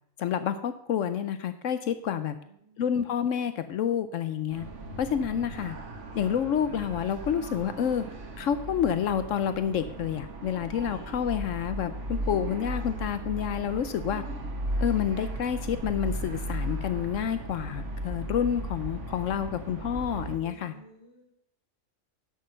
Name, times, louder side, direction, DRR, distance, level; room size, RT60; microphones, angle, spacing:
voice 1, 0.2-2.4 2.8-4.7 5.0-5.7 6.1-8.0 8.4-14.2 14.8-20.7, left 8 dB, 75° left, 11 dB, 1.0 m, -29 dB
voice 2, 2.3-2.8 20.4-21.2, right 2 dB, 15° right, -4 dB, 4.5 m, -54 dB
sound 1, 4.5-20.4, right 1 dB, 65° right, 1.7 m, -36 dB
10.5 x 6.4 x 6.5 m, 0.72 s
omnidirectional pair, 1.3 m